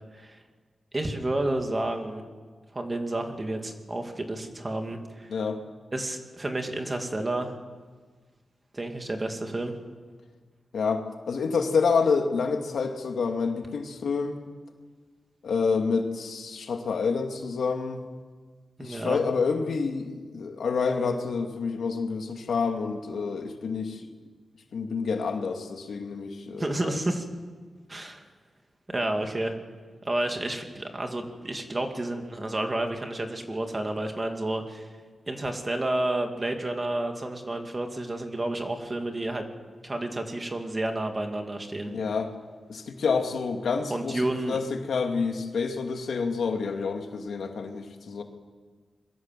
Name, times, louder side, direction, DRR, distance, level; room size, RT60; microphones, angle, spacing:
voice 1, 0.9-2.2 2.7-5.3 5.9-7.6 8.7-9.7 18.8-19.2 26.6-27.3 27.9-28.2 28.9-29.5 30.0-34.9 35.3-39.5 39.8-41.9 43.9-44.6, right 1 dB, 20° right, 4 dB, 2.4 m, -30 dB
voice 2, 10.7-14.4 15.4-18.0 18.8-24.0 24.7-27.0 41.9-42.3 42.7-48.2, left 5 dB, 80° left, 4 dB, 2.4 m, -28 dB
26.5 x 22.5 x 7.6 m, 1.5 s
wide cardioid pair, 165°, 0 cm